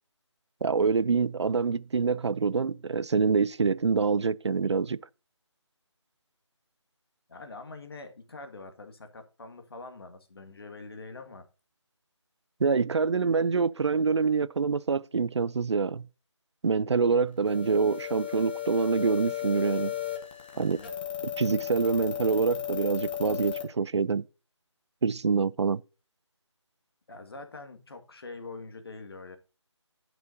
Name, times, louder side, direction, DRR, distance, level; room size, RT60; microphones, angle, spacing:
voice 1, 0.6-5.0 12.6-16.1 16.6-19.9 20.6-20.8 21.4-24.2 25.0-25.8, right 5 dB, 65° right, 0.5 m, -26 dB
voice 2, 7.3-11.5 20.5-20.9 27.1-29.4, left 3 dB, 50° left, 1.8 m, -44 dB
sound 1, 17.5-23.6, left 12 dB, 20° left, 1.2 m, -35 dB
17.5 x 6.1 x 2.7 m
figure-of-eight pair, 165°, 16 cm